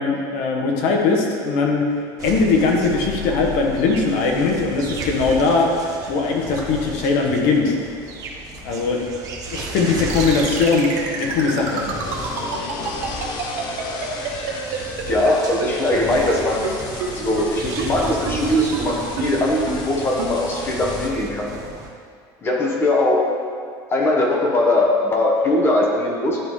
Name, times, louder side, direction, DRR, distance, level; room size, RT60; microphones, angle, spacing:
voice 1, 0.0-1.8 2.2-5.7 6.1-7.8 8.6-9.2 9.5-11.9, left 4 dB, 70° left, 0 dB, 1.2 m, -20 dB
sound 1, 2.2-21.9, right 2 dB, 35° right, 0.8 m, -34 dB
sound 2, 10.1-15.3 15.6-15.7 15.9-16.0 16.3-16.4 16.6-16.7 17.0-17.1 17.4-17.5 17.8-17.9 18.3-18.4 18.7-18.8 19.2-19.3 19.7-19.8 20.2-20.3, right 7 dB, 65° right, 1.1 m, -27 dB
sound 3, 10.4-21.1, left 3 dB, 45° left, 0.7 m, -35 dB
voice 2, 15.1-16.7 17.2-21.5 22.4-23.2 23.9-26.4, left 1 dB, 25° left, -2 dB, 1.2 m, -20 dB
10.5 x 3.6 x 3.2 m, 2.2 s
cardioid pair, 145°, 10 cm